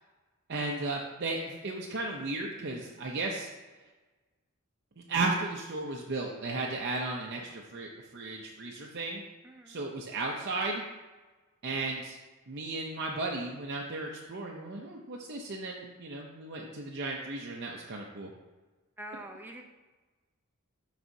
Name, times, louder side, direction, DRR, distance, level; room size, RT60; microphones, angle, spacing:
voice 1, 0.5-3.5 5.1-9.2 9.7-10.8 11.6-12.2 12.5-18.3, right 2 dB, 50° right, -1 dB, 0.6 m, -35 dB
voice 2, 2.8-3.2 9.4-9.8 19.0-19.7, right 1 dB, 10° right, 2 dB, 0.6 m, -46 dB
12.0 x 4.1 x 2.7 m, 1.2 s
head